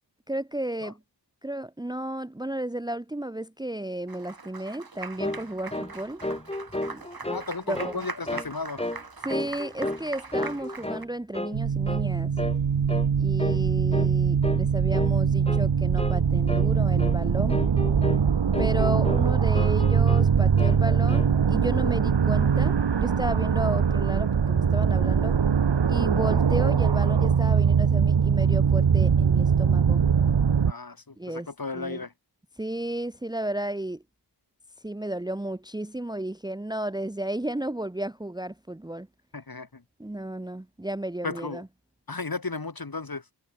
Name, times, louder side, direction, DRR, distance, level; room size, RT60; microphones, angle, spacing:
voice 1, 0.3-1.0 1.4-6.2 6.8-7.0 7.7-7.9 9.2-12.3 13.2-17.6 18.6-25.4 25.9-30.0 31.2-31.5 31.7-32.0 32.6-34.0 34.8-39.1 40.0-41.7, right 1 dB, 10° right, 0.9 m, -33 dB
Applause, 4.1-11.1, right 4 dB, 55° right, 3.3 m, -41 dB
sound 1, 5.2-5.4 5.7-5.9 6.2-7.4 7.7-8.0 8.3-8.5 8.8-9.0 9.3-10.1 10.3-11.1 11.3-11.6 11.9-12.1 12.4-12.6 12.9-13.1 13.4-13.6 13.9-14.1 14.4-14.6 14.9-15.2 15.5-15.6 16.0-16.2 16.5-16.7 17.0-17.2 17.5-18.2 18.5-19.3 19.5-20.3 20.6-21.3, left 1 dB, 15° left, 2.1 m, -32 dB
voice 2, 7.3-8.8 30.7-32.1 39.3-39.8 41.2-41.6 42.1-43.2, left 3 dB, 50° left, 5.6 m, -34 dB
sound 2, 11.5-30.7, right 6 dB, 70° right, 1.4 m, -22 dB
wide cardioid pair, 70°, 44 cm